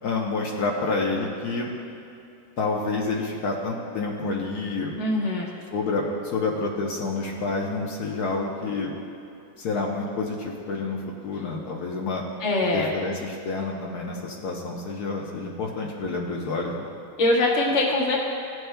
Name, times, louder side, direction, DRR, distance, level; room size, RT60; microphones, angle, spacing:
voice 1, 0.0-1.7 2.6-5.0 5.7-8.9 9.6-12.2 12.7-16.9, left 3 dB, 75° left, -2 dB, 1.4 m, -28 dB
voice 2, 5.0-5.5 12.4-12.9 17.2-18.2, left 2 dB, 50° left, -3 dB, 1.5 m, -22 dB
15.5 x 7.8 x 2.2 m, 2.8 s
omnidirectional pair, 1.7 m